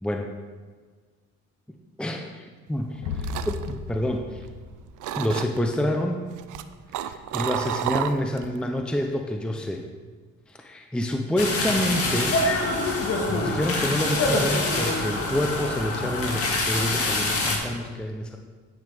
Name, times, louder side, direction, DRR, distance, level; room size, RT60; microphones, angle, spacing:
voice 1, 2.0-4.4 5.2-6.2 6.9-9.8 10.5-12.4 13.3-18.4, equal, 5° left, 3 dB, 0.7 m, -28 dB
sound 1, 2.8-4.7 5.0-5.7 6.3-8.6 8.9-9.2, right 11 dB, 80° right, 0.6 m, -31 dB
sound 2, 3.0-5.6, left 4 dB, 85° left, 0.8 m, -35 dB
sound 3, 11.4-17.6, left 2 dB, 50° left, 1.8 m, -25 dB
9.6 x 8.8 x 3.5 m, 1.5 s
cardioid pair, 90°, 30 cm